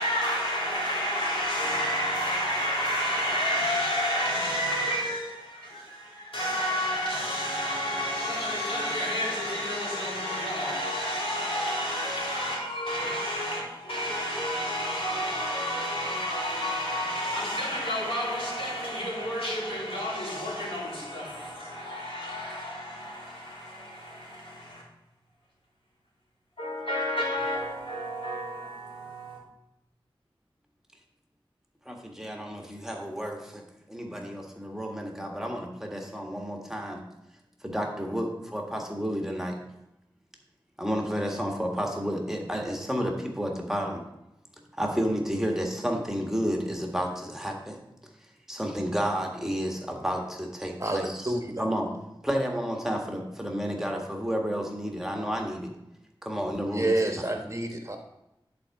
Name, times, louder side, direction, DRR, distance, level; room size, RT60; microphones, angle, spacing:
voice 1, 0.0-24.8 26.6-29.4, equal, 80° left, 3.1 m, -30 dB
voice 2, 31.8-33.6 33.9-37.0 37.6-39.5 40.8-44.0 44.8-47.8 48.5-51.3 51.6-51.9 52.2-55.7 56.2-57.3, equal, 5° right, 1.6 m, -31 dB
voice 3, 51.2-51.7 56.7-58.0, right 2 dB, 30° right, 1.2 m, -28 dB
10.5 x 4.3 x 4.7 m
wide cardioid pair, 45°, 9 cm